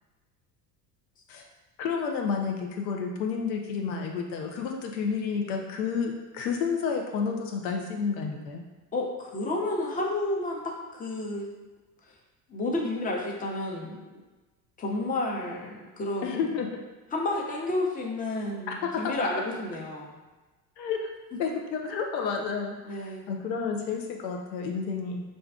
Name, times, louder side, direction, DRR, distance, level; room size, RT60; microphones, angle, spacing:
voice 1, 1.8-8.6 16.2-16.7 18.7-19.3 20.8-21.0 21.4-25.2, left 5 dB, 90° left, 2 dB, 0.6 m, -30 dB
voice 2, 8.9-10.6 10.9-11.5 12.5-14.2 14.8-16.4 17.1-20.2 22.8-23.3, left 2 dB, 15° left, -1 dB, 0.6 m, -31 dB
2.5 x 2.2 x 3.5 m, 1.2 s
hypercardioid pair, 80°, 50 cm